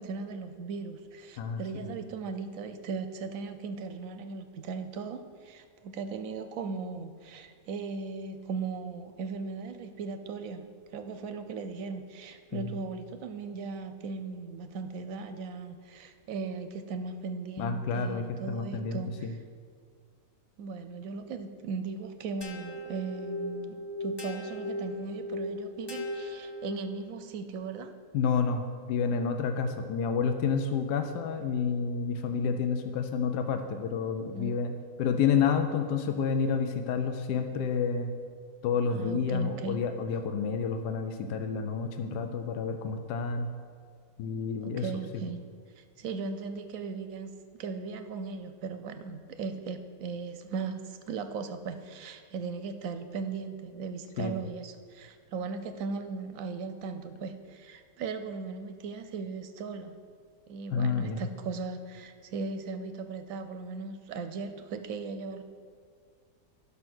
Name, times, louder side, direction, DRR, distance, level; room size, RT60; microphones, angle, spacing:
voice 1, 0.0-10.6 10.9-19.4 20.6-27.9 34.3-34.5 38.9-39.8 44.6-45.4 45.8-60.0 60.5-65.4, right 4 dB, 65° right, 9 dB, 0.9 m, -38 dB
voice 2, 17.6-19.3 28.1-28.6 28.9-34.7 35.0-38.1 38.6-43.5 44.2-44.9 54.2-54.3 60.7-61.2, left 6 dB, 80° left, 6 dB, 1.2 m, -29 dB
sound 1, 22.4-27.2, left 1 dB, 25° left, 0.6 m, -37 dB
11.5 x 5.6 x 6.1 m, 2.1 s
omnidirectional pair, 1.8 m